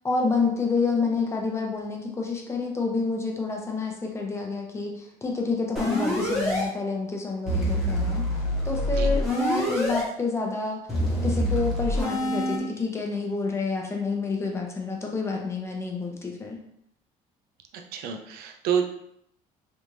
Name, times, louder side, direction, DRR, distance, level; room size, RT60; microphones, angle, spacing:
voice 1, 0.0-8.3 8.6-10.8 11.2-16.6, left 4 dB, 15° left, 0 dB, 0.7 m, -28 dB
sound 1, 5.8-6.6 7.5-10.0 10.9-12.6, equal, ahead, 1.1 m, -26 dB
voice 2, 17.9-19.0, right 7 dB, 75° right, 5 dB, 0.5 m, -28 dB
3.4 x 2.6 x 3.1 m, 0.74 s
cardioid pair, 120°, 16 cm